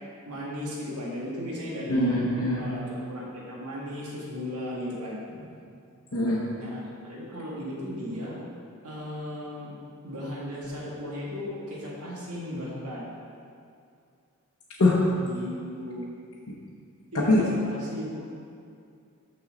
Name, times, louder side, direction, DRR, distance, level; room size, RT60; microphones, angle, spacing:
voice 1, 0.3-2.2 2.6-5.2 6.6-8.4 8.8-9.7 10.0-13.1 15.1-16.0 17.1-18.3, left 1 dB, 90° right, -5 dB, 1.6 m, -36 dB
voice 2, 1.9-2.6 6.1-6.4 14.8-15.0 17.3-17.4, left 2 dB, 65° left, -7 dB, 0.9 m, -22 dB
6.3 x 6.1 x 3.8 m, 2.4 s
head